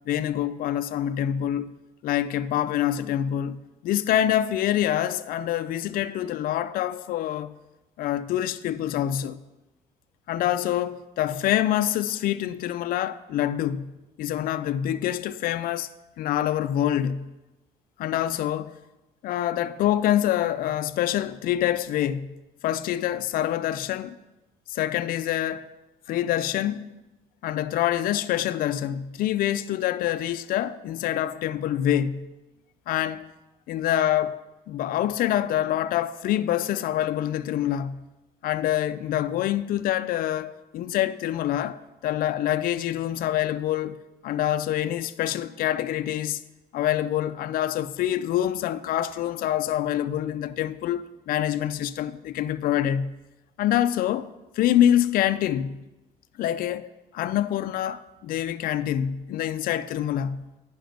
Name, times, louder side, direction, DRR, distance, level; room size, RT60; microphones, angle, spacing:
voice 1, 0.1-1.7 2.0-7.6 8.0-9.4 10.3-13.9 14.2-15.9 16.2-17.4 18.0-18.7 19.2-22.3 22.6-24.2 24.7-25.7 26.1-26.9 27.4-32.3 32.9-33.3 33.7-34.4 34.7-38.0 38.4-41.8 42.0-46.4 46.7-53.2 53.6-54.3 54.6-55.8 56.4-60.5, left 11 dB, 60° left, 0.4 m, -26 dB
9.2 x 5.0 x 5.2 m
cardioid pair, 110°, 17 cm